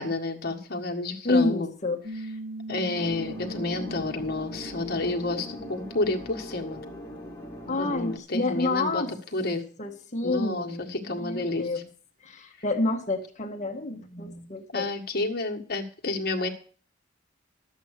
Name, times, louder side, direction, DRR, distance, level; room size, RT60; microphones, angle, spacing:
voice 1, 0.0-1.7 2.7-6.8 7.6-9.1 9.3-9.6 10.2-11.8 14.7-16.5, left 2 dB, 55° left, 2 dB, 1.8 m, -30 dB
voice 2, 1.2-2.0 7.7-9.1 9.8-11.8 12.2-14.9, left 2 dB, 40° left, 4 dB, 1.6 m, -28 dB
Piano, 2.0-7.2, right 2 dB, 50° right, 1.6 m, -42 dB
sound 1, 3.0-8.2, left 1 dB, 15° left, 2.0 m, -40 dB
12.0 x 8.2 x 6.5 m, 0.42 s
head